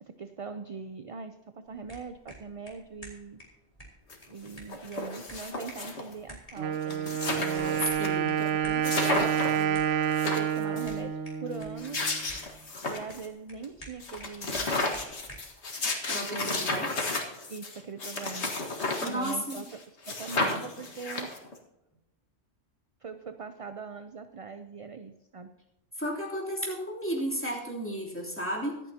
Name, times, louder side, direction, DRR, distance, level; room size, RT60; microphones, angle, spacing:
voice 1, 0.0-3.4 4.3-7.9 8.3-9.8 10.2-12.1 12.8-14.7 16.3-17.0 17.5-18.5 19.0-21.3 23.0-25.5, right 5 dB, 40° right, 8 dB, 0.5 m, -41 dB
sound 1, 1.7-15.6, equal, 30° left, 3.9 m, -51 dB
sound 2, 4.1-4.2 4.5-6.1 6.6-6.7 6.8-8.1 8.4-8.5 8.8-9.6 10.0-10.9 11.6-13.3 13.6-13.7 14.0-19.8 20.0-21.6, left 2 dB, 70° left, 2.0 m, -32 dB
Wind instrument woodwind instrument, 6.6-12.3, right 9 dB, 85° right, 1.1 m, -29 dB
voice 2, 7.8-8.3 16.1-16.9 19.0-19.6 26.0-28.8, equal, 10° left, -3 dB, 3.2 m, -33 dB
24.5 x 9.0 x 2.9 m, 0.98 s
omnidirectional pair, 1.2 m